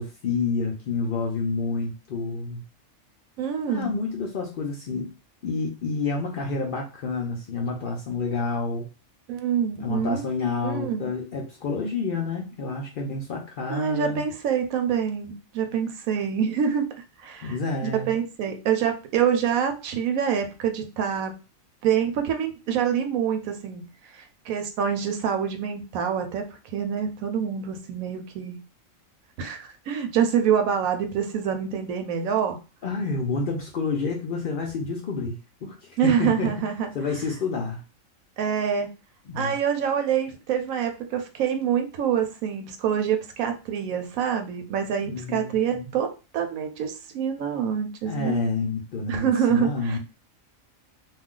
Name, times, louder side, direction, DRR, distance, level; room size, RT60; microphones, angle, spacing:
voice 1, 0.0-2.6 3.7-5.1 5.4-8.9 9.8-14.2 17.4-18.1 32.8-35.8 36.0-36.5 36.9-37.8 39.3-39.5 45.0-45.9 48.1-50.0, left 4 dB, 70° left, 0 dB, 0.5 m, -29 dB
voice 2, 3.4-3.9 9.3-10.2 10.6-11.1 13.7-16.9 17.2-21.4 21.8-23.8 24.1-28.5 29.4-32.6 36.0-36.9 38.4-38.9 39.3-46.1 46.3-48.4 49.1-50.0, right 8 dB, 80° right, 6 dB, 1.0 m, -26 dB
2.4 x 2.2 x 3.6 m, 0.32 s
omnidirectional pair, 1.4 m